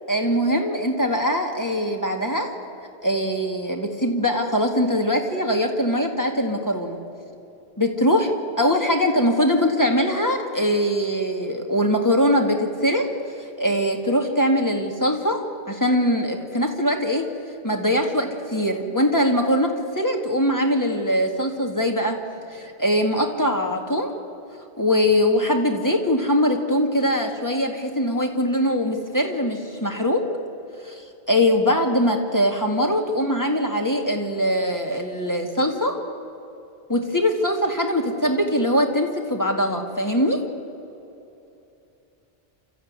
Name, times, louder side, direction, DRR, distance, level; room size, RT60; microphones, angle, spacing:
voice 1, 0.1-2.5 3.0-7.0 7.8-8.3 8.6-13.1 13.4-17.3 17.6-22.2 22.5-24.1 24.8-30.3 30.8-31.0 31.3-36.0 36.9-40.4, equal, 15° left, 2 dB, 2.1 m, -22 dB
29.0 x 14.0 x 9.6 m, 2.8 s
omnidirectional pair, 1.2 m